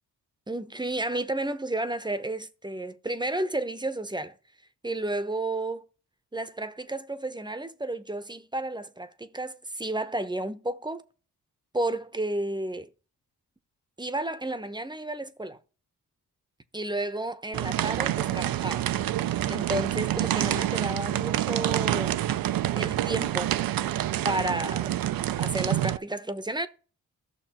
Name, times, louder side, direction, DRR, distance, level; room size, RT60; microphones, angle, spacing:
voice 1, 0.5-4.3 4.8-5.9 6.3-11.0 11.7-12.9 14.0-15.6 16.7-18.9 19.5-22.2 22.8-23.5 24.2-24.9 25.4-26.7, right 2 dB, 10° right, 0.8 m, -32 dB
sound 1, 17.5-26.0, right 12 dB, 60° right, 0.5 m, -27 dB
14.5 x 6.1 x 3.0 m
supercardioid pair, 45°, 40 cm